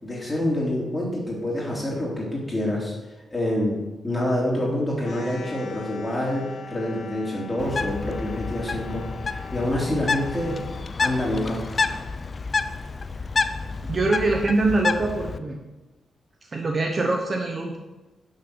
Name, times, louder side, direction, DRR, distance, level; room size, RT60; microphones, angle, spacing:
voice 1, 0.0-2.9 3.3-3.8 4.0-9.1 9.5-10.6 11.0-11.6, left 1 dB, 15° left, -3 dB, 3.5 m, -26 dB
sound 1, 5.0-10.8, left 4 dB, 50° left, 1.9 m, -41 dB
Bird, 7.6-15.4, left 4 dB, 35° left, 0.5 m, -29 dB
voice 2, 13.8-15.6 16.4-17.8, right 2 dB, 30° right, 2 dB, 1.1 m, -24 dB
10.0 x 6.5 x 6.3 m, 1.1 s
wide cardioid pair, 135°, 0 cm